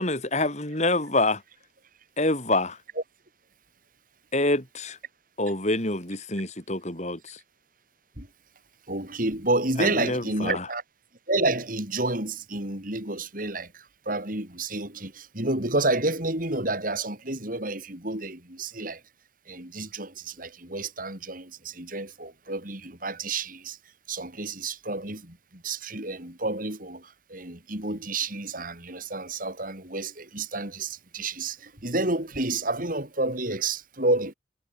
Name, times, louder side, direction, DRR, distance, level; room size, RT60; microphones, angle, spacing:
voice 1, 0.0-1.4 2.2-2.8 4.3-5.0 5.4-7.4 9.8-10.6, left 2 dB, 40° left, 6.1 m, -26 dB
voice 2, 8.9-10.8 11.3-19.0 19.5-23.8 24.1-34.3, right 2 dB, 45° right, 6.1 m, -30 dB
head